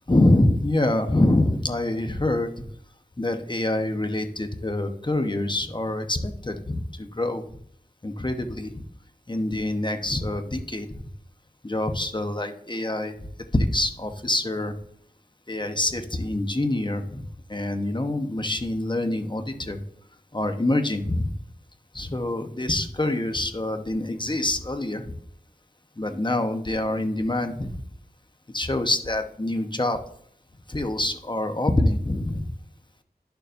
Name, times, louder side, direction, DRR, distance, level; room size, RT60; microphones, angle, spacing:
voice 1, 0.1-2.6 3.2-7.4 8.0-8.8 9.3-10.9 11.6-13.1 13.5-14.8 15.5-17.2 17.5-19.8 20.3-21.3 21.9-25.1 26.0-27.8 28.5-30.0 30.7-32.5, left 1 dB, 30° left, 6 dB, 1.0 m, -25 dB
11.0 x 6.9 x 2.6 m, 0.66 s
wide cardioid pair, 45°, 17 cm